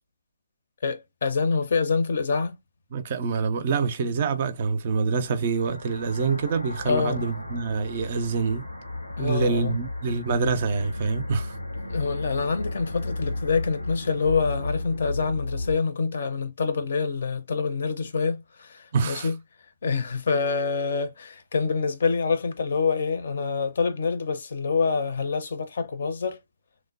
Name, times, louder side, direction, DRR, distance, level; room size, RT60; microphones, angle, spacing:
voice 1, 0.8-2.6 6.9-7.2 9.2-9.8 11.9-19.3 19.8-26.4, left 5 dB, 50° left, 0.5 m, -26 dB
voice 2, 2.9-8.6 9.2-11.6 18.9-19.3, right 5 dB, 35° right, 0.4 m, -26 dB
sound 1, 5.2-15.8, left 2 dB, 90° left, 0.9 m, -34 dB
3.1 x 2.1 x 2.4 m
figure-of-eight pair, 135°, 0 cm